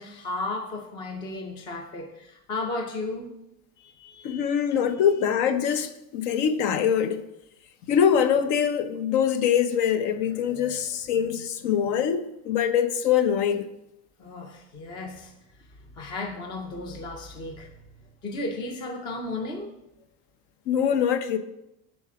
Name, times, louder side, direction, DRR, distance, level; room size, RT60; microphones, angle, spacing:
voice 1, 0.0-3.3 3.8-4.6 14.2-15.3 16.0-17.7 18.2-19.7, left 2 dB, 10° left, 0.3 m, -34 dB
voice 2, 4.2-7.2 7.9-13.6 20.7-21.4, left 8 dB, 60° left, 0.8 m, -23 dB
11.5 x 4.2 x 4.8 m
cardioid pair, 175°, 41 cm